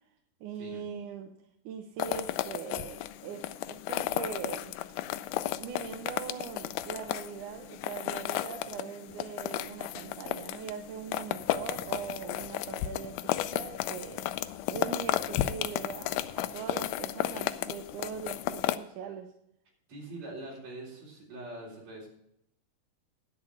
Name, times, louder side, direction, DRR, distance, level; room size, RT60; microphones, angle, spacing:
voice 1, 0.4-1.4 1.7-4.7 5.6-14.4 14.7-19.3, right 8 dB, 75° right, 5 dB, 2.1 m, -41 dB
sound 1, 2.0-18.8, left 14 dB, 85° left, 1.8 m, -34 dB
voice 2, 19.9-22.1, right 2 dB, 50° right, -3 dB, 4.9 m, -43 dB
10.5 x 8.4 x 5.9 m, 0.73 s
omnidirectional pair, 4.1 m